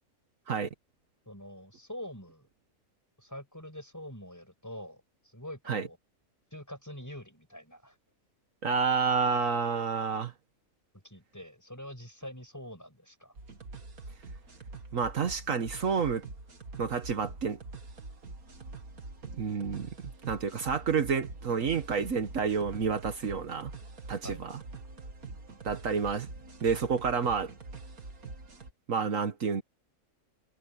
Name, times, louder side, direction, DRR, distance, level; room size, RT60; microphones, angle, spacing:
voice 1, 1.3-2.5 3.2-6.0 6.5-8.0 11.0-13.4 24.2-24.4, left 1 dB, 10° left, 6.3 m, -45 dB
voice 2, 8.6-10.3 14.9-16.2 16.8-17.6 19.4-19.9 20.3-23.7 24.1-24.6 25.6-26.3 26.6-27.5 28.9-29.6, right 5 dB, 65° right, 1.6 m, -29 dB
sound 1, 13.4-28.7, right 3 dB, 85° right, 2.7 m, -45 dB
omnidirectional pair, 1.5 m